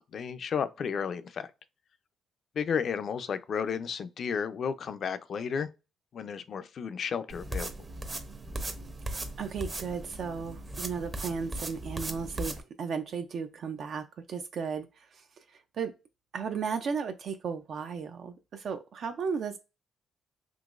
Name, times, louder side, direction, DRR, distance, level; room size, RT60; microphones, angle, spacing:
voice 1, 0.1-1.5 2.6-5.7 6.1-7.7, left 6 dB, 55° left, 0.4 m, -32 dB
sound 1, 7.3-12.6, right 1 dB, 30° right, 0.6 m, -38 dB
voice 2, 9.1-15.9 16.3-19.6, right 6 dB, 60° right, 0.4 m, -35 dB
3.8 x 2.9 x 2.4 m
cardioid pair, 90°, 0 cm